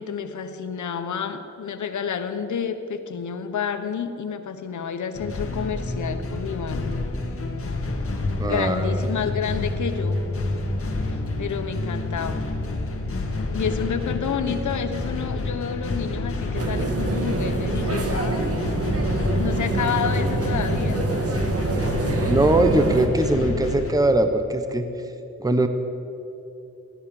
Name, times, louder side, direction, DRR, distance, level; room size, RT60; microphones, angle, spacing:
voice 1, 0.0-7.1 8.4-10.4 11.0-12.6 13.0-13.2 13.5-18.6 19.4-21.1, left 7 dB, 80° left, 8 dB, 1.2 m, -29 dB
sound 1, 5.1-23.9, left 2 dB, 50° left, 2.1 m, -28 dB
voice 2, 8.4-8.9 22.3-24.9 25.4-25.7, right 1 dB, 10° right, 8 dB, 1.0 m, -21 dB
sound 2, 16.5-23.1, right 2 dB, 50° right, 1.9 m, -26 dB
16.0 x 12.0 x 7.1 m, 2.8 s
cardioid pair, 80°, 29 cm